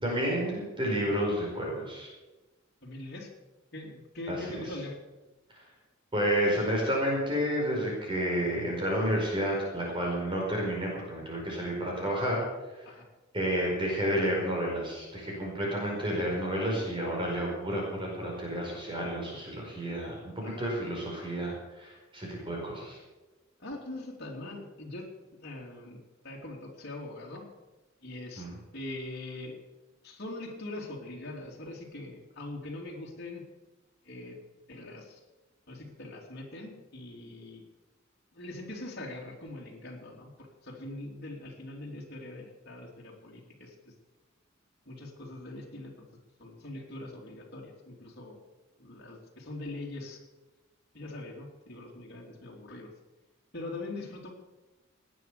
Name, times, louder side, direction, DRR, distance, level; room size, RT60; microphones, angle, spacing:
voice 1, 0.0-2.1 4.3-4.6 6.1-12.4 12.8-12.9 13.3-23.0 28.4-28.5, equal, 25° right, -2 dB, 4.9 m, -30 dB
voice 2, 2.8-3.3 3.7-5.0 12.8-13.0 20.4-20.7 23.6-25.1 25.4-27.5 28.0-28.5 28.7-29.6 30.0-33.4 34.0-34.4 34.7-35.2 35.7-37.6 38.3-43.9 44.8-46.1 46.4-48.4 48.8-50.2 50.9-52.9 53.5-54.3, left 2 dB, 55° left, -2 dB, 3.2 m, -42 dB
18.5 x 9.4 x 6.8 m, 1.1 s
head